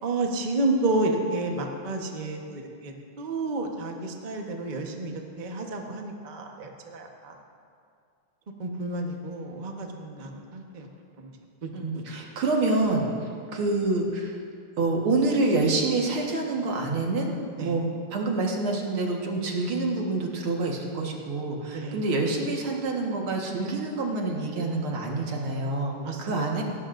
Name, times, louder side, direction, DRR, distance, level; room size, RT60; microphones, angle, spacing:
voice 1, 0.0-7.4 8.6-10.9 11.2-11.3 11.6-11.7 11.9-12.0 17.6-17.7 21.7-22.0 26.0-26.6, right 2 dB, 30° right, 1 dB, 1.0 m, -30 dB
voice 2, 11.7-14.4 14.8-17.3 17.6-26.6, right 2 dB, 80° right, 0 dB, 2.4 m, -27 dB
18.5 x 17.5 x 2.6 m, 2.3 s
omnidirectional pair, 2.3 m